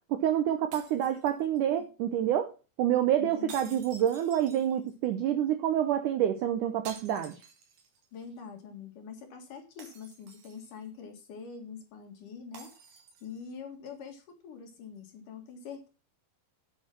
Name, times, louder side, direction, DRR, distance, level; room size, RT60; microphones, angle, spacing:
voice 1, 0.1-2.5 2.8-7.4, right 10 dB, 80° right, 9 dB, 1.8 m, -27 dB
sound 1, 0.7-1.8 3.5-5.1 6.9-8.1 8.4-8.5 9.8-10.9 12.5-13.5, right 5 dB, 55° right, 3.2 m, -50 dB
voice 2, 3.2-3.9 8.1-15.9, left 6 dB, 55° left, 4 dB, 3.1 m, -45 dB
8.7 x 8.2 x 6.0 m, 0.33 s
omnidirectional pair, 4.7 m